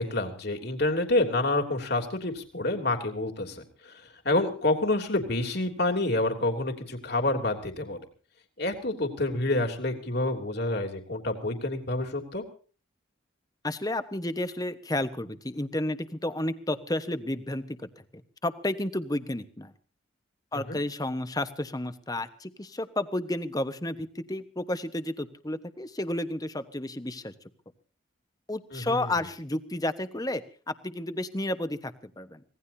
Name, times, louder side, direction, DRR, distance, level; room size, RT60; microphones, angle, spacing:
voice 1, 0.0-8.0 8.6-12.4 20.5-20.8 28.7-29.1, left 2 dB, 55° left, 4 dB, 3.3 m, -28 dB
voice 2, 13.6-19.7 20.5-27.3 28.5-32.4, left 1 dB, 20° left, 10 dB, 1.2 m, -32 dB
25.5 x 18.5 x 2.8 m, 0.41 s
head